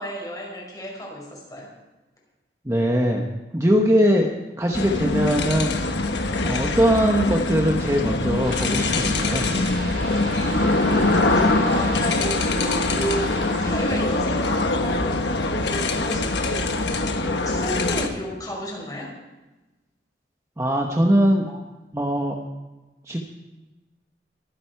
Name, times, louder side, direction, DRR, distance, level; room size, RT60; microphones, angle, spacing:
voice 1, 0.0-1.7 11.3-13.3 13.6-19.1 21.5-21.6, equal, 20° left, -2 dB, 5.1 m, -32 dB
voice 2, 2.6-3.2 3.5-4.3 4.6-5.8 6.4-9.5 20.6-21.5 21.9-22.4 23.1-23.2, equal, 15° right, 1 dB, 1.1 m, -21 dB
sound 1, 4.7-18.1, left 2 dB, 85° left, 1.3 m, -23 dB
sound 2, 8.4-14.0, right 2 dB, 65° right, 2.8 m, -35 dB
23.0 x 9.4 x 4.6 m, 1.1 s
head